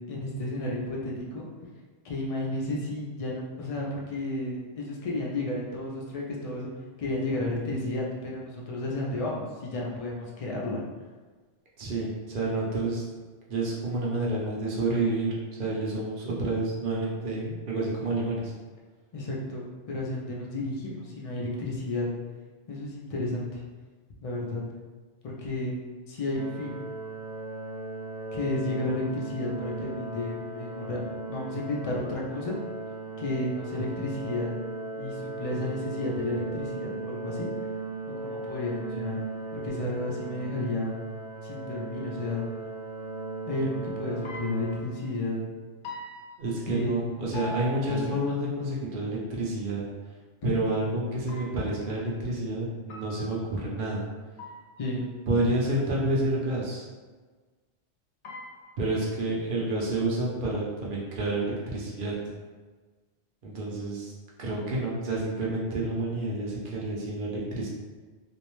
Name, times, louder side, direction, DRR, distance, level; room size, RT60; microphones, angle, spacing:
voice 1, 0.1-1.5 2.0-6.7 7.0-10.8 16.2-16.3 19.1-22.1 22.7-23.6 24.2-24.6 25.2-25.7 26.1-26.8 28.3-31.0 31.3-32.6 33.2-34.5 35.0-37.5 38.2-39.2 39.5-41.0 41.4-42.5 43.5-45.4 46.7-46.9 47.3-48.2 54.8-55.1, left 2 dB, 65° left, -3 dB, 0.3 m, -32 dB
voice 2, 11.8-13.0 13.5-18.5 46.4-49.8 50.4-54.1 55.3-56.9 58.8-62.1 63.4-64.1 64.4-67.7, right 2 dB, 55° right, -4 dB, 0.7 m, -29 dB
sound 1, 26.3-44.8, right 3 dB, 75° right, 1.0 m, -37 dB
sound 2, 44.2-45.1 45.8-47.0 47.3-48.4 51.3-51.9 52.9-53.6 54.4-55.1 58.2-59.1, left 1 dB, 85° left, 0.9 m, -43 dB
2.6 x 2.1 x 3.0 m, 1.4 s
omnidirectional pair, 1.2 m